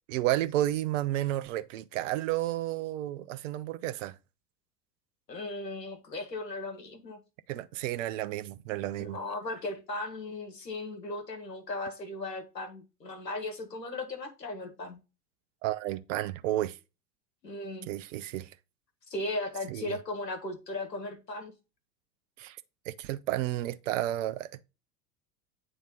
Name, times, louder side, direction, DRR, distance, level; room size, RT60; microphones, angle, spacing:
voice 1, 0.1-4.2 7.5-9.2 15.6-16.8 17.9-18.5 19.7-20.0 22.4-22.6 22.9-24.6, right 14 dB, 50° right, 0.7 m, -31 dB
voice 2, 5.3-7.2 9.0-15.0 17.4-17.9 19.1-21.5, left 2 dB, 80° left, 1.5 m, -37 dB
8.6 x 3.3 x 3.7 m
figure-of-eight pair, 80°, 49 cm